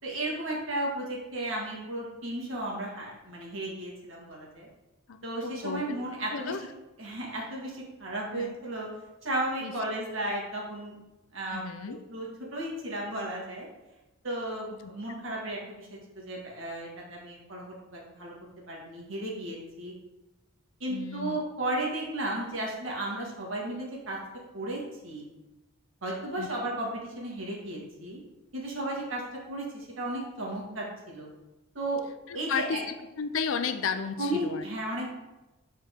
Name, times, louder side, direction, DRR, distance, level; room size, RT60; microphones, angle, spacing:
voice 1, 0.0-4.7 5.2-6.6 7.0-8.9 9.2-11.0 11.3-13.7 14.2-18.3 18.7-19.9 20.8-24.2 24.5-25.2 26.0-28.2 28.5-29.2 29.5-31.3 31.7-32.0 32.3-32.8 34.2-35.1, right 1 dB, 70° right, -3 dB, 1.9 m, -34 dB
voice 2, 5.1-6.0 6.3-6.7 8.3-8.6 9.6-9.7 11.5-12.0 14.7-14.9 20.9-21.4 26.4-26.5 32.3-32.8 33.2-34.6, left 6 dB, 80° left, 9 dB, 0.5 m, -33 dB
7.7 x 4.3 x 3.6 m, 1.0 s
head